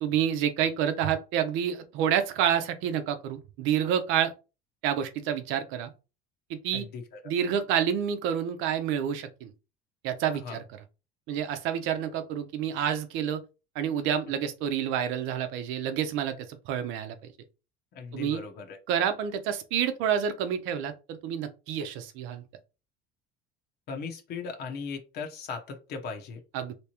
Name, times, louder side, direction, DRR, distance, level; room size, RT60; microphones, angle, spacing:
voice 1, 0.0-4.3 4.8-5.9 6.5-6.9 7.3-9.5 10.0-10.6 11.3-13.4 13.7-17.1 18.1-18.4 18.9-22.4 26.5-26.7, right 9 dB, 70° right, 0.7 m, -28 dB
voice 2, 6.7-7.3 10.4-10.6 17.9-18.8 23.9-26.4, left 5 dB, 50° left, 0.9 m, -38 dB
3.4 x 3.0 x 2.9 m
cardioid pair, 140°, 21 cm